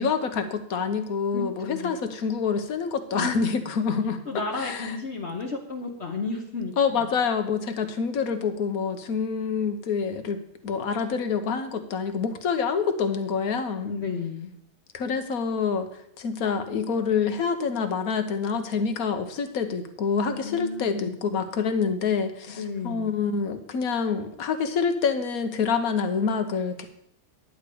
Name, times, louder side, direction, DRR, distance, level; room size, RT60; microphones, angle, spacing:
voice 1, 0.0-4.2 4.6-4.9 6.8-13.9 14.9-15.9 16.2-26.8, left 5 dB, 65° left, 8 dB, 1.5 m, -27 dB
voice 2, 1.3-1.9 3.1-3.5 4.2-7.2 13.8-14.5 20.3-21.2 22.5-23.1, left 4 dB, 45° left, 2 dB, 1.3 m, -33 dB
11.0 x 5.1 x 8.5 m, 0.74 s
omnidirectional pair, 1.7 m